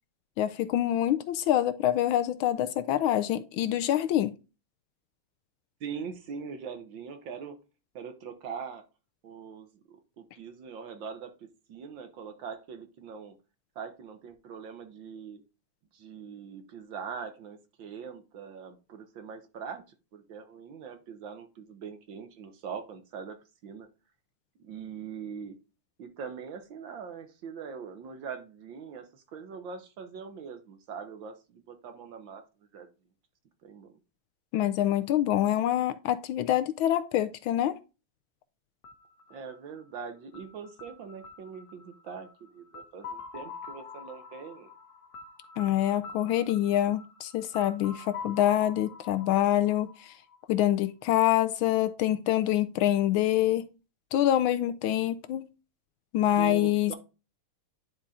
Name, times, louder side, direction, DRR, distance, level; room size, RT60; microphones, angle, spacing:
voice 1, 0.4-4.4 34.5-37.8 45.6-50.1 50.5-53.7 54.1-55.5 56.1-56.9, left 12 dB, 75° left, 1.3 m, -26 dB
voice 2, 5.8-7.6 8.0-8.8 9.2-13.4 13.8-15.4 15.9-19.8 20.1-23.4 23.6-23.9 24.6-25.6 26.0-32.9 33.6-33.9 39.3-44.7 56.4-56.9, right 6 dB, 65° right, 1.7 m, -42 dB
sound 1, 38.8-50.6, left 5 dB, 55° left, 1.3 m, -46 dB
10.0 x 3.8 x 4.2 m
omnidirectional pair, 2.4 m